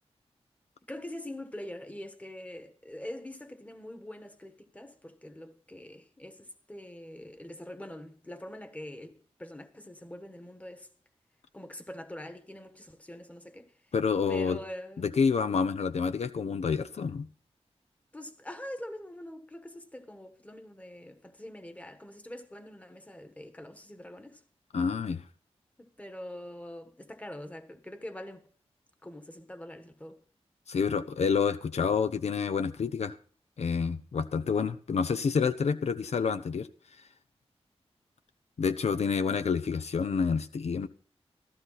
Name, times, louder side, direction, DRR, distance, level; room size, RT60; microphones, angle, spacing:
voice 1, 0.9-9.1 9.4-10.9 11.5-13.7 14.3-15.1 18.1-24.4 25.8-28.4 29.0-30.2, left 1 dB, 15° left, 1.4 m, -44 dB
voice 2, 13.9-14.6 15.0-17.3 24.7-25.2 30.7-33.2 33.6-36.7 38.6-40.9, left 5 dB, 75° left, 0.7 m, -28 dB
15.0 x 13.5 x 4.1 m
wide cardioid pair, 135°, 11 cm